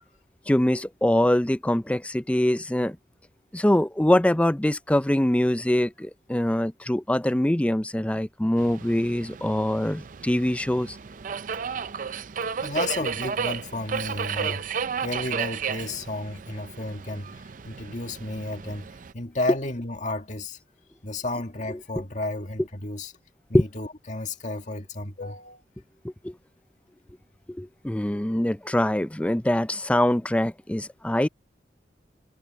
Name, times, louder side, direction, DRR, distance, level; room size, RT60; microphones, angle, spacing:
voice 1, 0.5-3.0 3.5-11.0 23.5-23.6 26.0-26.3 27.5-31.3, left 1 dB, 5° left, 0.5 m, -23 dB
Subway metro underground, 8.6-19.1, right 6 dB, 50° right, 0.5 m, -33 dB
voice 2, 12.6-14.6 15.0-20.6 21.0-23.1 23.5-25.6, left 2 dB, 45° left, 2.0 m, -32 dB
head